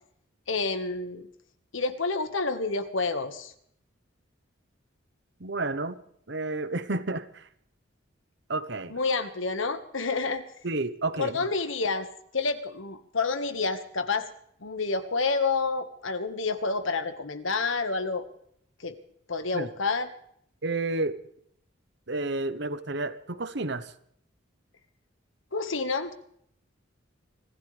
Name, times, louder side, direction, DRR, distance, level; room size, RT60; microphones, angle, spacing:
voice 1, 0.5-1.3 1.7-3.5 8.9-10.4 11.2-12.1 12.3-14.3 14.6-18.2 18.8-19.0 19.3-20.1 25.5-26.1, left 4 dB, 80° left, 9 dB, 1.6 m, -29 dB
voice 2, 5.4-6.0 6.3-7.5 8.5-8.9 10.6-11.4 19.5-19.7 20.6-21.2 22.1-23.9, right 2 dB, 60° right, 12 dB, 1.1 m, -30 dB
25.0 x 15.5 x 3.4 m, 0.67 s
head